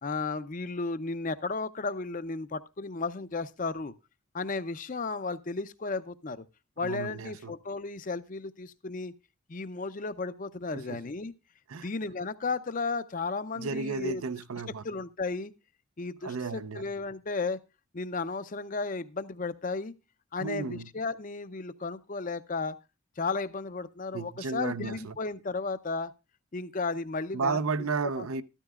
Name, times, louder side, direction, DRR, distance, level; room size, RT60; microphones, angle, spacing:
voice 1, 0.0-3.9 4.3-6.4 6.8-9.1 9.5-11.3 11.8-14.2 14.8-15.5 16.0-17.6 17.9-19.9 20.3-22.8 23.2-26.1 26.5-27.6 28.2-28.3, left 3 dB, 35° left, 0.6 m, -34 dB
voice 2, 6.8-7.5 10.7-11.0 11.7-11.9 13.6-14.8 16.2-16.8 20.4-20.9 24.1-25.1 27.3-28.4, right 4 dB, 80° right, 0.6 m, -33 dB
13.5 x 13.0 x 2.4 m
head